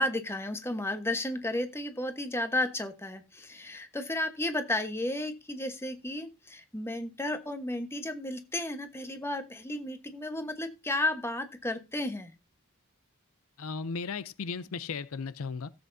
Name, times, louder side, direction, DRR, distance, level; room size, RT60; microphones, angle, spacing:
voice 1, 0.0-12.3, left 1 dB, 10° left, 1.2 m, -33 dB
voice 2, 13.6-15.7, left 5 dB, 75° left, 0.6 m, -36 dB
15.5 x 7.9 x 2.7 m
head